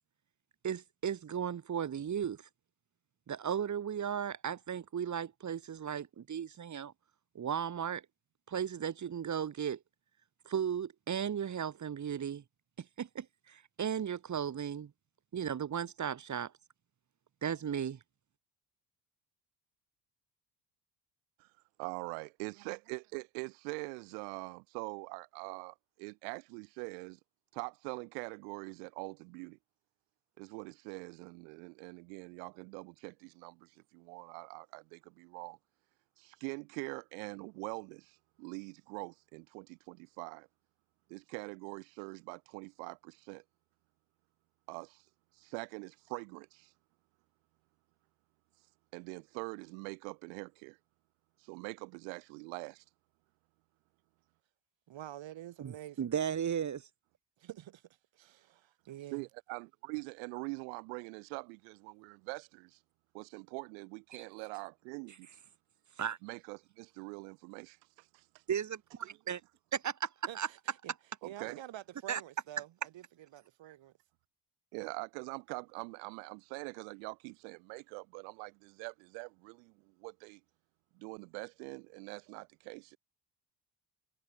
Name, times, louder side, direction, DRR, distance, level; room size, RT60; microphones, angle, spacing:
voice 1, 0.6-2.5 3.3-6.9 7.3-8.0 8.5-9.8 10.4-12.4 12.8-14.9 15.3-16.5 17.4-18.0 55.6-56.9 64.1-64.2 66.0-66.2 68.5-69.4 69.7-70.5 72.1-72.2, right 8 dB, 35° right, 1.5 m, -35 dB
voice 2, 21.8-27.2 27.5-29.6 30.4-35.6 36.2-40.5 41.1-43.4 44.7-45.1 45.3-46.7 48.9-50.8 51.4-52.8 59.1-62.8 63.1-65.3 66.2-68.4 69.0-69.2 71.2-71.6 73.6-73.7 74.7-80.4 80.9-83.0, right 40 dB or more, 85° right, 0.8 m, -44 dB
voice 3, 54.9-56.1 57.4-57.8 58.1-59.2 70.3-70.9 71.2-73.0 73.3-73.9, right 13 dB, 60° right, 4.2 m, -48 dB
supercardioid pair, 70°, 50 cm